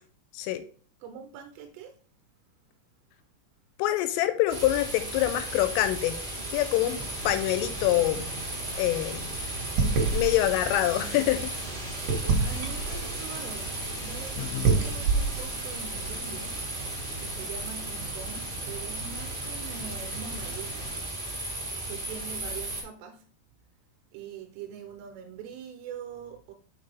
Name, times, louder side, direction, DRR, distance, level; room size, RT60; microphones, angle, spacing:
voice 1, 1.0-2.0 12.4-16.7 17.2-21.0 21.9-23.3 24.1-26.5, right 7 dB, 80° right, 3.2 m, -43 dB
voice 2, 3.8-6.2 6.5-8.3 8.8-9.3 10.1-11.5, left 14 dB, 85° left, 3.1 m, -25 dB
sound 1, 4.5-22.8, right 1 dB, 20° right, 1.2 m, -36 dB
sound 2, 6.8-21.0, right 4 dB, 60° right, 2.4 m, -33 dB
sound 3, 13.8-14.7 15.0-15.1 16.8-16.9 17.1-17.5, left 10 dB, 30° left, 2.2 m, -40 dB
6.6 x 5.8 x 3.3 m
omnidirectional pair, 5.9 m